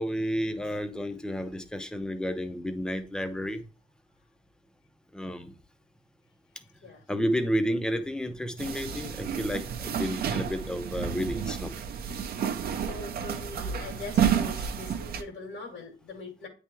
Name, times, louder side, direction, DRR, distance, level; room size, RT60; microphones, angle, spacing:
voice 1, 0.0-3.6 5.1-5.5 7.1-11.7, equal, 5° left, 8 dB, 0.5 m, -31 dB
sound 1, 8.6-15.2, right 7 dB, 50° right, 0.6 m, -30 dB
voice 2, 12.9-16.5, left 2 dB, 80° left, 0 dB, 1.8 m, -42 dB
9.1 x 3.4 x 3.0 m, 0.34 s
wide cardioid pair, 170°, 20 cm